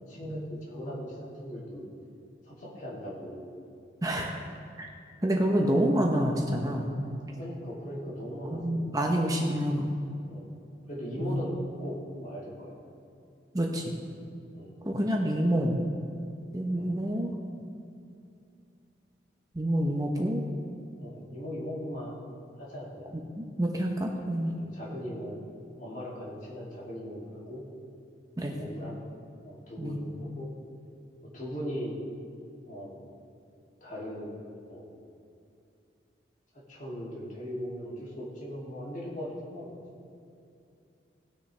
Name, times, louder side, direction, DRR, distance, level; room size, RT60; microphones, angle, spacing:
voice 1, 0.1-1.8 2.5-3.5 7.4-9.1 10.3-10.5 10.9-12.8 14.5-14.7 16.7-16.9 19.9-20.1 21.0-22.2 22.6-23.1 24.5-25.4 25.8-27.7 28.5-29.0 29.4-30.5 31.3-32.0 32.7-33.0 33.8-34.3 34.7-34.9 36.5-39.7, equal, 45° left, -6 dB, 2.6 m, -39 dB
voice 2, 4.0-4.4 4.8-4.9 5.2-6.9 8.4-9.9 11.2-11.4 13.5-13.9 14.8-15.8 16.5-17.3 19.5-20.4 23.3-24.5 28.4-28.6 29.8-30.1, right 1 dB, 20° right, 0 dB, 0.8 m, -28 dB
19.5 x 6.5 x 3.3 m, 2.6 s
head